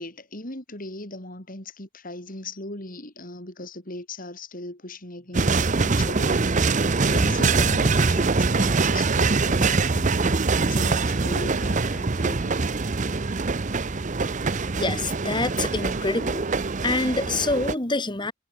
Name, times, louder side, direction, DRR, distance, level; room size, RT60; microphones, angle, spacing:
voice 1, 0.0-6.7 7.1-10.4 10.7-12.5, left 2 dB, 40° left, 5.2 m, -38 dB
sound 1, 5.3-17.7, right 4 dB, 35° right, 0.7 m, -23 dB
voice 2, 14.8-16.5 16.8-18.3, left 2 dB, 20° left, 1.8 m, -26 dB
head